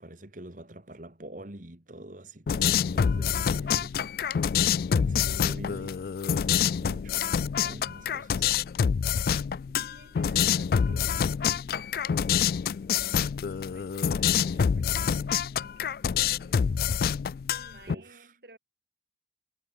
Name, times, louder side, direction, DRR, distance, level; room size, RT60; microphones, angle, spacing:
voice 1, 0.0-4.7 5.0-6.0 6.2-7.2 7.6-8.5 17.9-18.4, right 1 dB, 45° right, 2.2 m, -45 dB
sound 1, 2.5-17.9, left 7 dB, 55° left, 0.3 m, -26 dB
voice 2, 9.9-12.5 13.2-16.9 17.5-18.6, right 2 dB, 60° right, 2.8 m, -54 dB
head